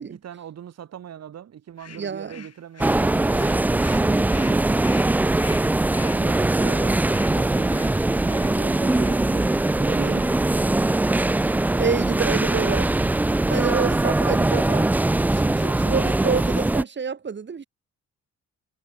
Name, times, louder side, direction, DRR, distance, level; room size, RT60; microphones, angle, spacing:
voice 1, 0.0-4.7 5.9-10.4 12.4-12.7 13.6-14.0 15.6-16.1, right 9 dB, 60° right, 2.3 m, -40 dB
sound 1, 1.8-9.8 10.2-10.4 10.8-11.0 11.4-11.7 12.0-12.5, left 8 dB, 55° left, 7.3 m, -46 dB
voice 2, 2.0-2.5 10.0-10.2 11.7-12.9 13.5-15.0 15.3-17.6, right 6 dB, 35° right, 2.6 m, -28 dB
sound 2, 2.8-16.8, right 2 dB, 5° right, 0.3 m, -21 dB
cardioid pair, 90°, 30 cm